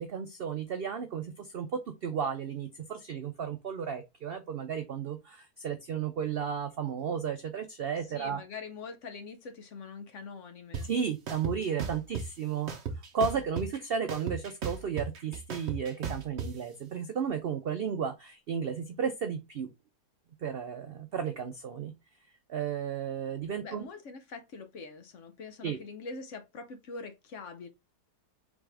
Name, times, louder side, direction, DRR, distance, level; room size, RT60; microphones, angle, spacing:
voice 1, 0.0-8.4 10.9-12.7 13.1-19.7 20.4-21.9 22.5-23.8 25.6-25.8, right 7 dB, 80° right, 0.5 m, -33 dB
voice 2, 8.1-10.9 23.6-27.7, left 4 dB, 60° left, 0.9 m, -44 dB
sound 1, 10.7-10.8 11.3-12.2 12.7-13.8 14.1-16.5, right 6 dB, 50° right, 1.0 m, -35 dB
4.0 x 3.6 x 3.3 m
omnidirectional pair, 1.7 m